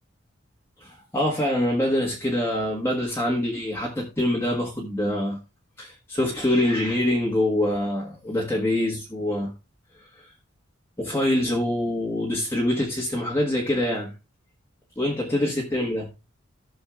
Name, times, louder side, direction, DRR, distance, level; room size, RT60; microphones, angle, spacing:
voice 1, 0.8-5.4 5.8-9.5 11.0-14.1 15.0-16.1, left 1 dB, 15° left, 1.5 m, -25 dB
15.0 x 6.4 x 2.4 m
head